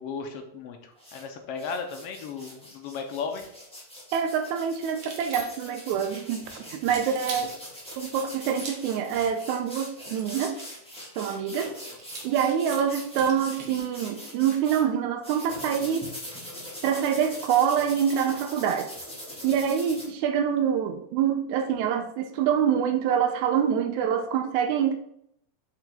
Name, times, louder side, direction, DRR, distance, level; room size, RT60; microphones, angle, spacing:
voice 1, 0.0-3.5, left 5 dB, 75° left, 5 dB, 1.5 m, -35 dB
sound 1, 1.0-1.2 1.6-14.8 15.2-20.0, equal, 5° left, 1.0 m, -42 dB
voice 2, 4.1-7.6 8.0-10.6 11.2-11.7 12.2-16.1 16.8-18.9 19.4-25.0, right 8 dB, 85° right, 6 dB, 2.0 m, -26 dB
sound 2, 4.9-5.8 6.8-7.5 8.5-9.0 10.0-10.8 12.0-13.8, right 3 dB, 55° right, 1.5 m, -41 dB
6.4 x 4.8 x 3.5 m, 0.73 s
omnidirectional pair, 3.3 m